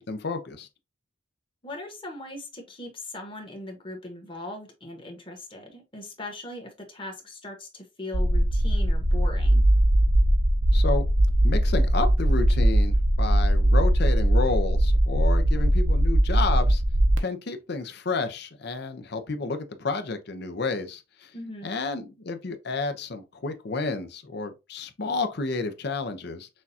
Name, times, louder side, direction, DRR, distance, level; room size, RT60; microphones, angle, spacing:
voice 1, 0.1-0.7 10.7-11.0 11.4-16.8 17.2-21.3 21.6-26.5, left 3 dB, 60° left, 0.7 m, -31 dB
voice 2, 1.6-9.6 21.3-21.7, left 1 dB, 30° left, 1.3 m, -39 dB
sound 1, 8.1-17.2, right 1 dB, 90° right, 0.8 m, -20 dB
6.2 x 2.4 x 2.8 m
head